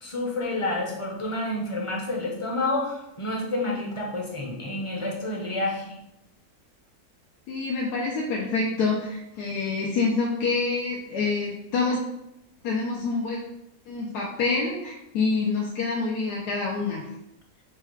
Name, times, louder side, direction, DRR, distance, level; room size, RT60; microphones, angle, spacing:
voice 1, 0.0-5.9, left 2 dB, 30° left, -2 dB, 0.6 m, -29 dB
voice 2, 7.5-12.0 12.6-13.4 13.9-17.1, left 4 dB, 85° left, -2 dB, 1.2 m, -27 dB
4.5 x 2.3 x 4.6 m, 0.85 s
omnidirectional pair, 1.6 m